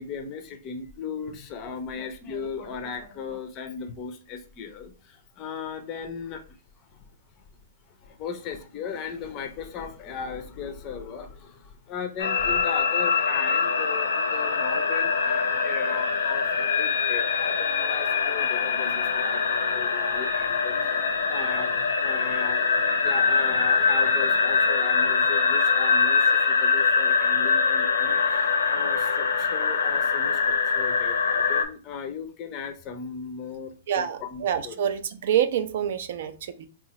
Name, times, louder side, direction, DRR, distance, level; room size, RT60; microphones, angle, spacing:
voice 1, 0.0-7.0 7.9-20.8 21.3-22.7 23.0-34.8, left 6 dB, 25° left, 6 dB, 0.5 m, -37 dB
sound 1, 12.2-31.6, left 5 dB, 85° left, 0.6 m, -23 dB
voice 2, 33.9-36.7, right 9 dB, 55° right, 10 dB, 0.4 m, -27 dB
2.9 x 2.3 x 4.1 m, 0.37 s
hypercardioid pair, 165°, 0 cm